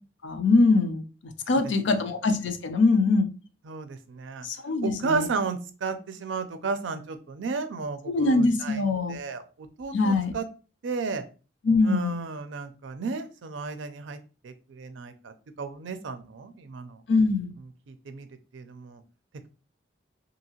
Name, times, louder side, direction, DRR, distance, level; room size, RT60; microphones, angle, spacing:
voice 1, 0.2-3.3 4.4-5.3 8.1-9.2 9.9-10.3 11.6-12.1 17.1-17.6, left 3 dB, 80° left, 6 dB, 0.5 m, -23 dB
voice 2, 3.7-4.5 4.8-8.8 9.1-10.5 10.8-11.2 11.8-14.2 14.4-17.0 17.9-18.3 18.5-19.0, right 4 dB, 85° right, 9 dB, 0.4 m, -33 dB
2.8 x 2.7 x 2.8 m, 0.35 s
head